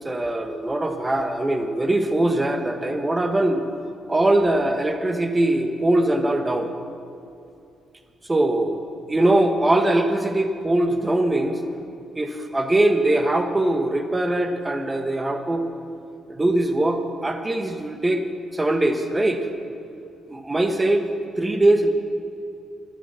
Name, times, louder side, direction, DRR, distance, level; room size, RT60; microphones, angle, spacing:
voice 1, 0.0-3.6 4.1-6.7 8.3-11.6 12.1-15.6 16.3-18.2 18.5-19.4 20.3-21.1 21.4-21.9, right 1 dB, 15° right, 6 dB, 1.3 m, -21 dB
12.0 x 12.0 x 7.0 m, 2.6 s
cardioid pair, 90°, 0 cm